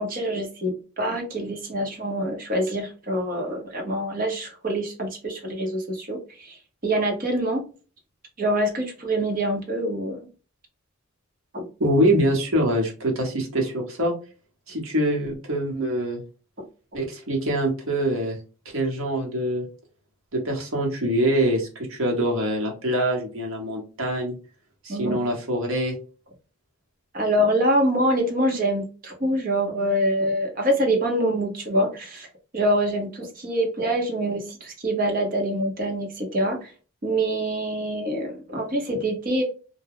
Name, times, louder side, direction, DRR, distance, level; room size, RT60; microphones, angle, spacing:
voice 1, 0.0-6.6 6.8-7.6 8.4-10.3 11.5-11.7 24.9-25.2 27.1-32.3 32.5-36.7 37.0-39.4, right 1 dB, 40° right, 1 dB, 0.8 m, -25 dB
voice 2, 11.8-14.1 14.7-16.2 16.9-18.4 18.7-19.6 20.3-24.3 24.8-25.9, right 1 dB, 70° right, 1 dB, 1.0 m, -24 dB
2.3 x 2.1 x 3.3 m, 0.36 s
head